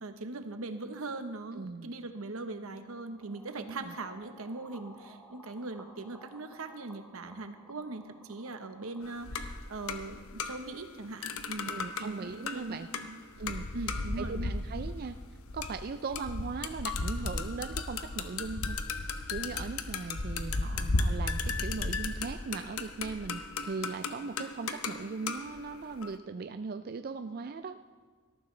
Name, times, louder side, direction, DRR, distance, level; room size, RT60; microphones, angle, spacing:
voice 1, 0.0-13.2 13.7-14.5, right 2 dB, 80° right, 8 dB, 1.0 m, -40 dB
voice 2, 1.5-1.9 3.6-3.9 11.7-12.9 13.4-13.7 14.2-15.2 15.5-18.8 19.3-27.8, right 4 dB, 45° right, 9 dB, 0.4 m, -39 dB
sound 1, 3.1-9.1, equal, 5° left, 1.2 m, -56 dB
sound 2, 9.0-10.9 11.2-26.2, left 3 dB, 90° left, 0.9 m, -35 dB
18.0 x 13.5 x 3.3 m, 1.5 s
head